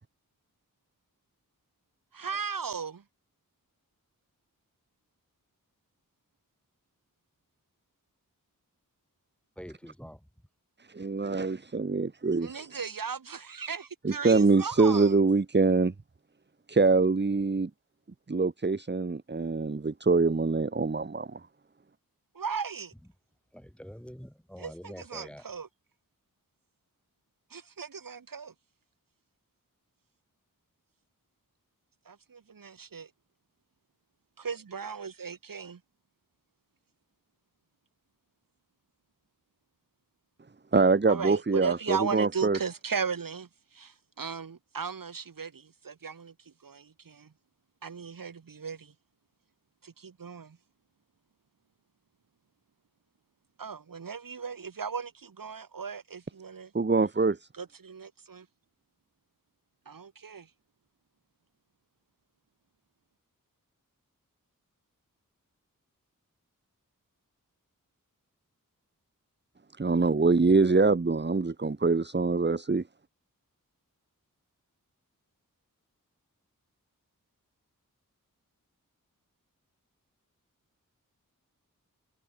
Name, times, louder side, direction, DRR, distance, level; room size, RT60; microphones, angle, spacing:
voice 1, 2.1-3.0 12.4-15.1 22.3-22.9 24.6-25.7 27.5-28.5 32.1-33.1 34.4-35.8 41.1-43.5 43.7-46.3 46.6-47.3 47.8-48.9 49.8-50.6 53.6-56.7 57.6-58.4 59.8-60.5, right 6 dB, 80° right, 1.6 m, -37 dB
voice 2, 9.6-10.3 23.5-25.5, equal, 5° left, 2.8 m, -45 dB
voice 3, 10.9-12.7 14.0-15.9 16.7-17.7 18.3-21.4 40.7-42.6 56.7-57.5 69.8-72.8, right 3 dB, 30° right, 1.1 m, -24 dB
wide cardioid pair, 50°, 33 cm